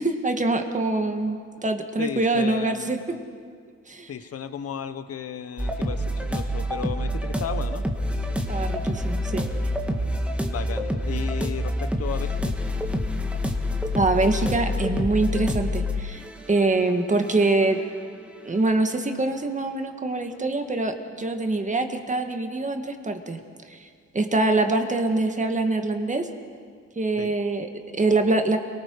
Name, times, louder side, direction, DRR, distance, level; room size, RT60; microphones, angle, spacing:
voice 1, 0.0-3.0 3.9-4.1 8.5-9.4 13.9-17.8 18.4-23.4 23.7-23.9 24.1-26.3 27.0-28.6, right 2 dB, 25° right, 5 dB, 1.9 m, -24 dB
voice 2, 2.0-2.9 4.1-7.8 10.4-12.5 27.2-27.3, left 8 dB, 50° left, 11 dB, 1.2 m, -34 dB
sound 1, 5.6-18.3, left 1 dB, 5° right, 1.9 m, -27 dB
29.0 x 19.0 x 4.8 m, 2.1 s
cardioid pair, 90°, 30 cm